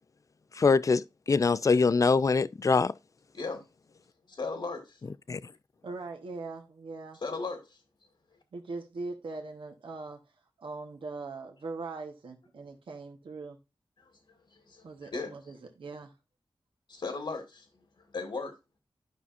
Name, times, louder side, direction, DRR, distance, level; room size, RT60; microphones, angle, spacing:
voice 1, 0.6-2.9 5.3-5.4, left 4 dB, 40° left, 0.4 m, -23 dB
voice 2, 3.3-3.6 4.3-5.0 7.1-7.8 14.0-15.5 16.9-17.7 18.0-18.6, left 3 dB, 70° left, 1.6 m, -37 dB
voice 3, 5.8-7.2 8.5-10.2 10.6-13.6 14.8-16.1, right 3 dB, 80° right, 1.1 m, -41 dB
12.0 x 5.5 x 2.5 m
wide cardioid pair, 85°, 9 cm